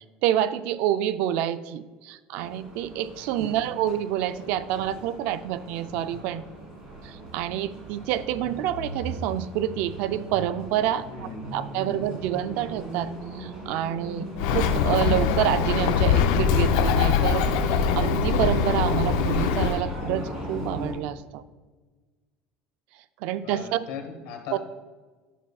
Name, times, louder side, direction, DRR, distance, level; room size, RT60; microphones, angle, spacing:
voice 1, 0.2-6.5 7.0-11.1 11.5-13.1 13.3-14.3 14.5-21.4 23.2-23.8 24.5-24.6, right 11 dB, 65° right, 13 dB, 0.4 m, -28 dB
sound 1, 2.4-20.9, right 1 dB, 25° right, 2.4 m, -38 dB
voice 2, 3.4-3.7 11.1-12.1 23.4-24.6, left 5 dB, 70° left, 5 dB, 1.2 m, -39 dB
Bird, 14.4-19.8, left 6 dB, 90° left, 0.6 m, -22 dB
10.0 x 7.0 x 2.3 m, 1.4 s
cardioid pair, 155°, 3 cm